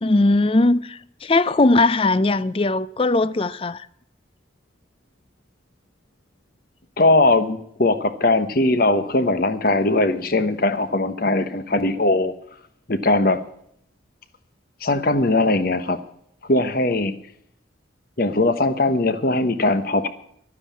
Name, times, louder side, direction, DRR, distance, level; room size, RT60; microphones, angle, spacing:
voice 1, 0.0-3.9, left 2 dB, 30° left, 0.5 m, -19 dB
voice 2, 7.0-12.3 12.9-13.4 14.8-16.0 16.5-17.1 18.2-20.1, left 2 dB, 50° left, 1.0 m, -20 dB
12.5 x 9.6 x 8.4 m
head